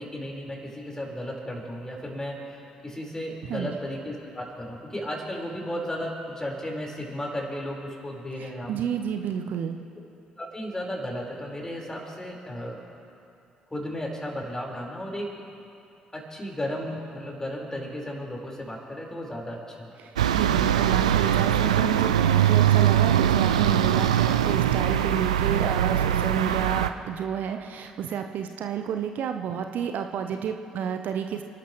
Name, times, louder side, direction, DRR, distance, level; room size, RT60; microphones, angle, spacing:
voice 1, 0.0-8.8 10.4-12.8 13.7-15.3 16.1-19.9, equal, 15° left, -2 dB, 4.5 m, -34 dB
voice 2, 8.4-9.8 20.0-31.4, right 8 dB, 60° right, 6 dB, 0.8 m, -30 dB
sound 1, 20.2-26.9, right 10 dB, 85° right, 0.4 m, -22 dB
30.0 x 12.0 x 3.1 m, 2.7 s
figure-of-eight pair, 50°, 3 cm